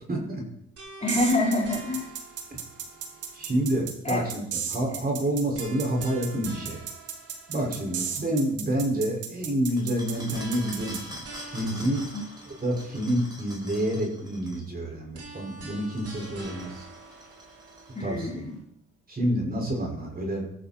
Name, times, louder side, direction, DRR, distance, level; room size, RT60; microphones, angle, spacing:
voice 1, 0.1-0.4 3.3-6.8 7.5-11.2 11.5-12.1 12.6-16.9 18.0-18.3 19.1-20.5, right 1 dB, 30° right, -1 dB, 5.8 m, -28 dB
sound 1, 0.8-3.9 5.5-8.5 10.3-13.5 15.1-18.6, right 3 dB, 50° right, 5.9 m, -46 dB
voice 2, 1.0-2.1 4.0-4.3 4.9-5.0 12.1-12.2 17.9-18.6, left 2 dB, 20° left, -3 dB, 4.5 m, -27 dB
sound 2, 1.1-11.0, right 8 dB, 80° right, 2.4 m, -34 dB
sound 3, 9.8-14.7 15.7-18.2, equal, 15° right, 5.0 m, -45 dB
20.0 x 13.5 x 4.5 m, 0.75 s
cardioid pair, 90°, 30 cm